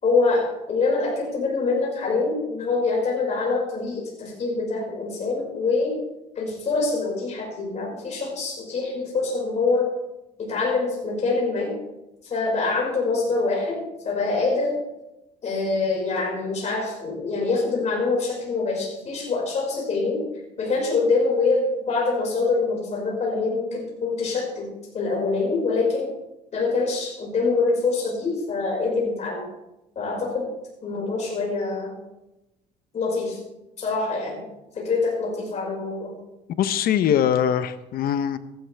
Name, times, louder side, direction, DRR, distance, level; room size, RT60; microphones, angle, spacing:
voice 1, 0.0-5.9 6.4-9.9 10.4-11.7 12.2-13.8 14.0-14.7 15.4-20.2 20.6-24.7 24.9-26.1 26.5-29.4 30.0-30.5 30.8-31.9 32.9-33.4 33.8-34.5 34.7-36.1, left 3 dB, 45° left, -3 dB, 5.4 m, -25 dB
voice 2, 36.6-38.4, left 9 dB, 65° left, 13 dB, 0.8 m, -22 dB
15.5 x 12.5 x 3.4 m, 0.94 s
cardioid pair, 110°, 17 cm